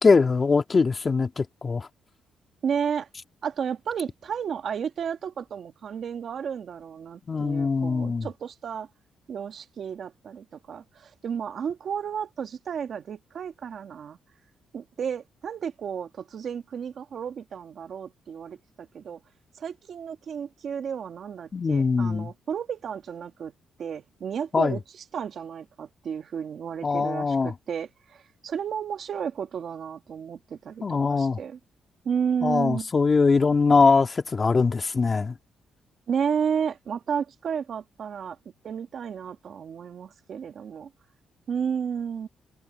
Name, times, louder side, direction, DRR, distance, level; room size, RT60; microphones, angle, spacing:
voice 1, 0.0-1.9 7.3-8.3 21.5-22.3 24.5-24.8 26.8-27.5 30.8-31.4 32.4-35.3, left 4 dB, 35° left, 2.0 m, -22 dB
voice 2, 2.6-3.1 3.4-8.9 9.3-14.2 14.7-19.2 19.6-23.5 23.8-31.6 32.0-32.9 36.1-38.4 38.6-40.9 41.5-42.3, right 7 dB, 60° right, 1.7 m, -32 dB
cardioid pair, 100°, 0 cm